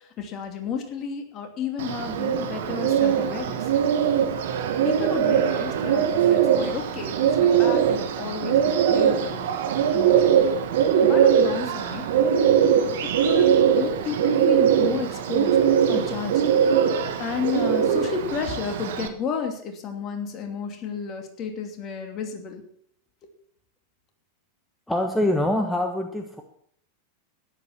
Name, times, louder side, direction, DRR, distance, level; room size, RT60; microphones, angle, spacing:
voice 1, 0.2-3.6 4.8-9.5 9.9-10.4 11.0-12.0 13.0-15.6 15.9-16.4 17.2-22.6, left 6 dB, 30° left, 4 dB, 2.7 m, -32 dB
Bird, 1.8-19.1, right 8 dB, 55° right, 1.5 m, -21 dB
voice 2, 24.9-26.4, left 1 dB, 5° left, 4 dB, 1.4 m, -24 dB
13.0 x 10.5 x 6.0 m, 0.63 s
figure-of-eight pair, 90°, 0 cm